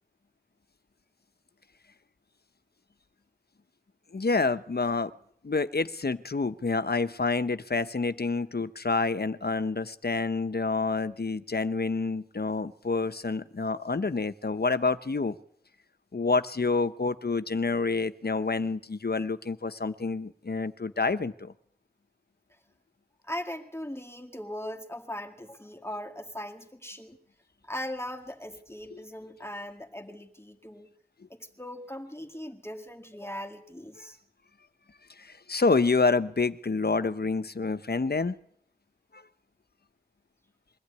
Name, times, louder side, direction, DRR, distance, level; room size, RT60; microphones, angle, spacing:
voice 1, 4.1-5.1 5.4-15.4 16.1-21.5 28.9-29.0 34.0-34.1 35.2-38.3 39.1-39.2, left 3 dB, 80° left, 13 dB, 0.9 m, -28 dB
voice 2, 23.2-27.2 27.7-30.9 31.3-34.2, left 1 dB, 15° left, 3 dB, 1.9 m, -39 dB
22.5 x 15.0 x 9.6 m, 0.68 s
wide cardioid pair, 45°, 16 cm